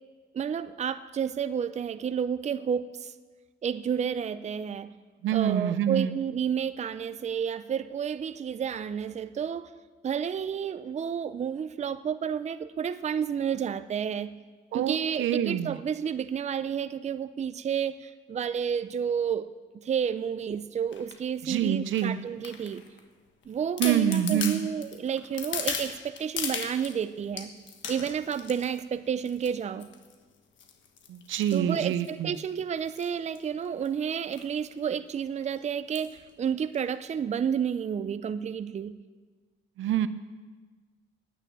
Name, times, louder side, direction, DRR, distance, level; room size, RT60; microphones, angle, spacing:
voice 1, 0.3-3.1 3.6-4.9 5.3-9.7 10.0-14.3 14.7-19.5 19.7-22.8 23.5-27.5 27.9-29.9 31.5-39.0, right 7 dB, 35° right, 12 dB, 0.5 m, -31 dB
voice 2, 5.2-6.1 14.7-15.8 21.4-22.2 23.8-24.6 31.1-32.3 39.8-40.1, right 10 dB, 75° right, 13 dB, 0.6 m, -26 dB
sound 1, 20.9-21.2 21.9-23.0 23.4-23.5 23.8-27.0 27.4-28.8 29.3-29.5 29.8-30.1 30.6-32.4 32.9-33.1 33.3-33.4 33.6-33.9 34.3-34.5 34.8-34.9 35.9-36.2 36.7-36.8, left 7 dB, 70° left, 1.4 m, -37 dB
9.8 x 9.1 x 9.1 m, 1.4 s
cardioid pair, 90°, 20 cm